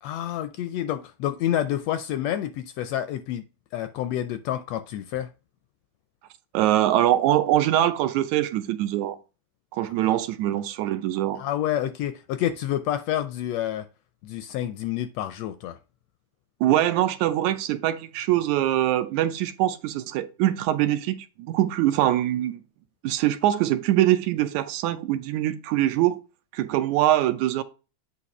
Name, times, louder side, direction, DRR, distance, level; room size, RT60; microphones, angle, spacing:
voice 1, 0.0-3.4 3.7-5.3 10.0-10.2 11.3-13.9 14.2-15.8, left 11 dB, 80° left, 1.5 m, -28 dB
voice 2, 6.5-9.2 9.7-11.4 16.6-22.6 23.0-26.2 26.5-27.6, right 13 dB, 80° right, 2.0 m, -23 dB
8.3 x 2.8 x 5.9 m
omnidirectional pair, 3.3 m